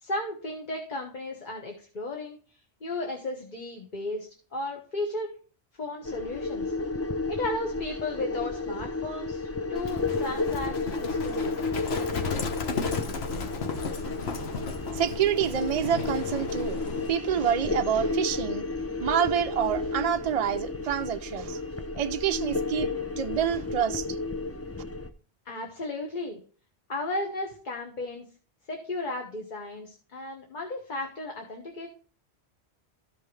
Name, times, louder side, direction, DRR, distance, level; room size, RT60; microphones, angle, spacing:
voice 1, 0.0-2.4 2.8-5.3 5.8-6.7 7.3-11.5 25.4-26.4 26.9-28.3 28.7-31.9, left 2 dB, 45° left, 1.3 m, -34 dB
sound 1, 6.1-25.1, left 3 dB, 25° left, 0.3 m, -32 dB
Livestock farm animals working animals, 9.8-17.1, left 4 dB, 70° left, 1.2 m, -35 dB
voice 2, 14.9-16.8 17.1-18.6 19.0-21.6 21.9-24.2, right 9 dB, 60° right, 0.4 m, -27 dB
13.5 x 5.5 x 3.2 m
omnidirectional pair, 1.1 m